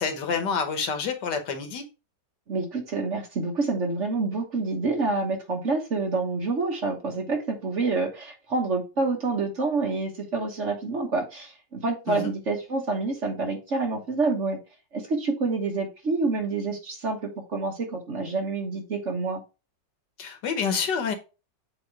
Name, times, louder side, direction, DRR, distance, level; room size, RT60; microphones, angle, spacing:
voice 1, 0.0-1.9 12.1-12.3 20.2-21.1, left 6 dB, 75° left, 1.7 m, -28 dB
voice 2, 2.5-14.6 14.9-19.4, right 3 dB, 45° right, 1.4 m, -27 dB
7.6 x 2.9 x 4.7 m
omnidirectional pair, 1.9 m